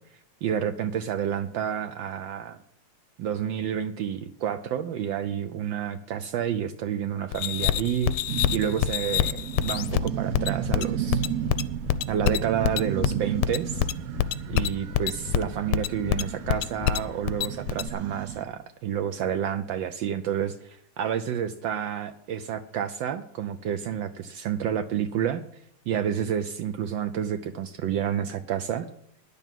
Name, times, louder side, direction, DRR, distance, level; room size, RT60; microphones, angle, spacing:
voice 1, 0.4-2.6 3.2-8.2 8.5-11.3 12.1-13.9 14.5-25.4 25.9-28.9, right 9 dB, 70° right, 9 dB, 1.3 m, -29 dB
sound 1, 7.3-17.9, left 12 dB, 85° left, 1.5 m, -26 dB
sound 2, 8.3-18.4, right 10 dB, 85° right, 0.8 m, -34 dB
10.0 x 7.0 x 9.1 m, 0.66 s
omnidirectional pair, 2.3 m